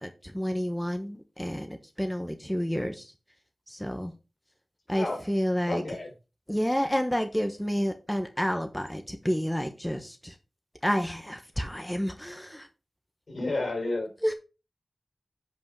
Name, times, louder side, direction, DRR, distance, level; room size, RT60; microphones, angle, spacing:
voice 1, 0.0-3.1 3.7-4.1 4.9-5.8 6.5-10.3 10.8-12.7 14.2-14.3, equal, 5° left, 1.1 m, -30 dB
voice 2, 5.7-6.1 13.3-14.1, left 2 dB, 70° left, 4.0 m, -31 dB
8.2 x 5.2 x 4.7 m
wide cardioid pair, 70°, 0 cm